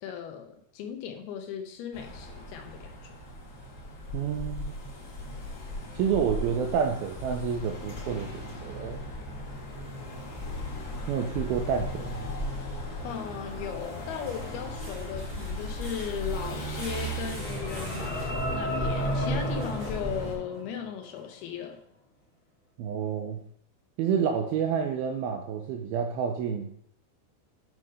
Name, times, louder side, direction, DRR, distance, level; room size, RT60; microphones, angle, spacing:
voice 1, 0.0-3.1 13.0-21.8, left 8 dB, 75° left, 5 dB, 2.5 m, -37 dB
sound 1, 1.9-20.4, left 1 dB, 45° left, 2.0 m, -37 dB
voice 2, 4.1-4.7 6.0-8.3 8.6-9.0 11.1-12.3 22.8-23.4 24.0-26.8, right 7 dB, 85° right, 4 dB, 2.2 m, -29 dB
sound 2, 13.1-20.6 21.2-21.3 21.7-21.8, right 2 dB, 70° right, 1.0 m, -49 dB
sound 3, 16.9-21.2, equal, 5° left, 1.3 m, -33 dB
9.1 x 3.6 x 5.3 m, 0.65 s
omnidirectional pair, 4.9 m